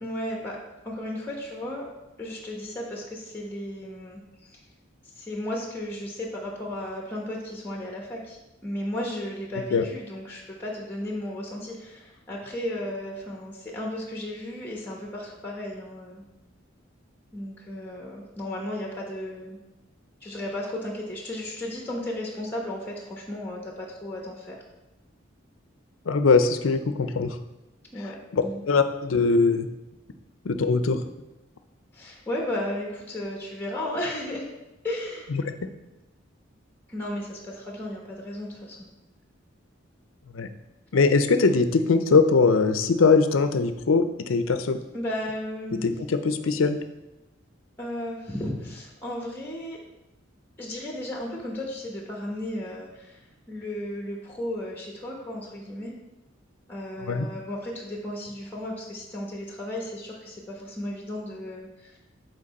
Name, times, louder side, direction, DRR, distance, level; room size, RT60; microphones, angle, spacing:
voice 1, 0.0-0.6 0.8-1.8 2.2-4.6 5.1-16.2 17.3-19.6 20.2-24.6 27.9-28.2 28.4-28.6 31.9-34.5 34.8-35.3 36.9-38.9 44.9-45.9 47.8-49.8 50.6-55.9 56.7-62.0, left 1 dB, 10° left, -1 dB, 1.0 m, -34 dB
voice 2, 26.1-27.4 28.3-29.7 30.4-31.0 35.3-35.4 40.3-40.5 40.9-44.8 45.8-46.8 57.1-57.3, left 4 dB, 85° left, 9 dB, 0.5 m, -21 dB
7.6 x 4.6 x 4.1 m, 0.99 s
head